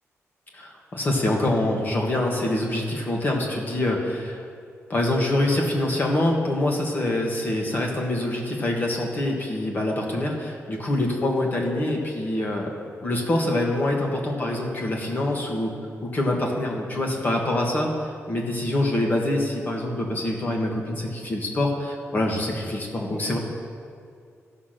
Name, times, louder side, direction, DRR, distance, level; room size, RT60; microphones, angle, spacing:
voice 1, 0.5-4.4 4.9-12.7 13.0-15.7 16.0-17.9 18.3-23.4, left 1 dB, 35° left, 0 dB, 1.6 m, -25 dB
15.0 x 5.9 x 6.6 m, 2.3 s
wide cardioid pair, 175°, 5 cm